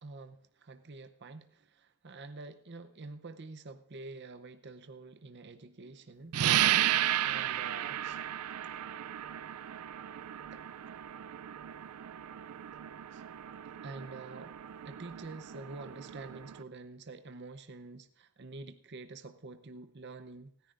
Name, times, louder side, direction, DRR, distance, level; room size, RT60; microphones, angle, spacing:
voice 1, 0.0-6.4 7.2-8.2 10.1-10.2 10.5-10.6 13.1-13.2 13.8-14.6 14.8-20.7, right 3 dB, 50° right, 8 dB, 0.7 m, -47 dB
sound 1, 6.3-16.6, right 11 dB, 85° right, 0.4 m, -34 dB
30.0 x 10.5 x 2.5 m, 0.75 s
head